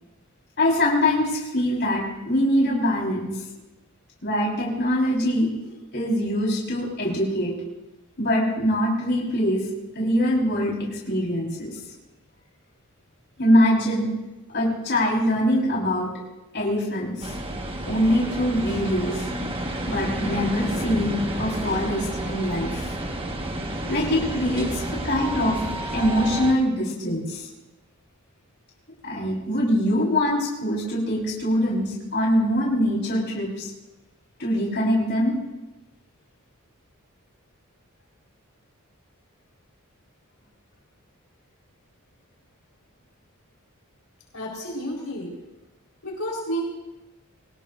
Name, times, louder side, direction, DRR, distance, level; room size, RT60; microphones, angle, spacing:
voice 1, 0.6-3.4 4.2-7.5 8.2-9.6 9.9-11.8 13.4-14.1 14.5-16.1 16.5-17.3 17.9-22.9 23.9-25.6 25.9-27.5 29.0-33.7 34.4-35.3, equal, 50° left, -4 dB, 4.4 m, -23 dB
sound 1, 17.2-26.5, right 1 dB, 25° right, 1.4 m, -30 dB
voice 2, 44.3-45.3 46.0-46.6, right 1 dB, 70° left, -2 dB, 4.4 m, -30 dB
24.0 x 19.0 x 2.6 m, 1.0 s
head